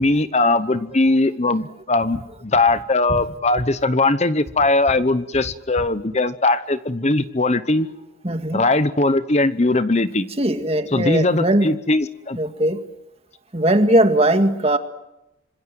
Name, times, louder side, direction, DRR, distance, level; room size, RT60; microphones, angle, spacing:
voice 1, 0.0-7.9 8.5-10.3 10.9-12.4, left 2 dB, 35° left, 13 dB, 0.9 m, -20 dB
voice 2, 8.2-8.6 10.4-11.8 12.4-12.8 13.5-14.8, right 1 dB, 30° right, 7 dB, 1.9 m, -19 dB
26.5 x 26.0 x 7.8 m, 0.89 s
head